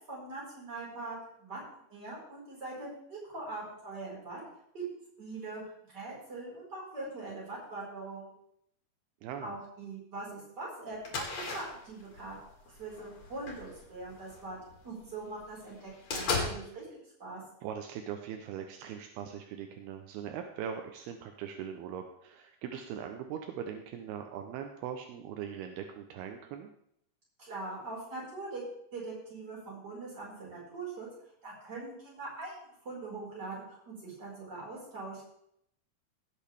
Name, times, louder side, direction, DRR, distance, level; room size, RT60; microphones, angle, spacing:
voice 1, 0.1-1.6 1.9-4.4 4.7-4.8 5.2-5.6 5.9-8.3 9.4-14.6 14.8-16.8 17.2-17.4 27.4-28.6 28.9-31.1 31.4-32.5 32.8-35.2, right 3 dB, 25° right, -5 dB, 5.2 m, -42 dB
voice 2, 9.2-9.5 17.6-26.7, right 8 dB, 80° right, 5 dB, 2.6 m, -40 dB
sound 1, 11.0-14.8 15.3-15.4 15.7-16.5, left 3 dB, 50° left, 3.1 m, -36 dB
17.0 x 8.5 x 3.4 m, 0.72 s
omnidirectional pair, 4.7 m